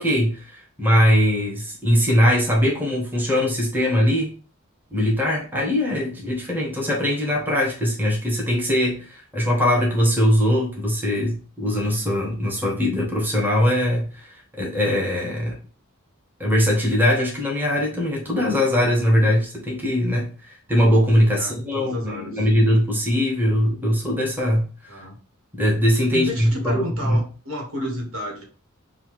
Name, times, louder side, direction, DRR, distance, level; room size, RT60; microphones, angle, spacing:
voice 1, 0.0-4.3 4.9-15.6 16.4-24.7 25.5-27.2, equal, 10° right, -3 dB, 1.0 m, -21 dB
voice 2, 21.3-22.4 24.9-25.2 26.1-28.4, equal, 65° right, -1 dB, 1.5 m, -31 dB
5.5 x 2.3 x 3.1 m, 0.37 s
head